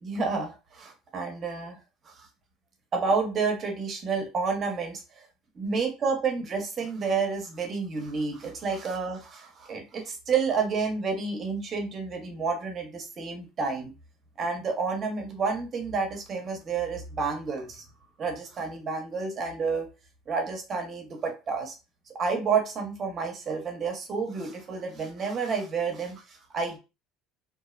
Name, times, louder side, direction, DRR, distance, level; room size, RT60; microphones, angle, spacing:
voice 1, 0.0-1.8 2.0-2.3 2.9-5.2 5.5-13.9 14.4-17.8 18.2-19.9 20.3-21.8 22.1-26.8, right 5 dB, 40° right, 2 dB, 0.9 m, -30 dB
2.6 x 2.0 x 2.4 m, 0.30 s
supercardioid pair, 95°, 0 cm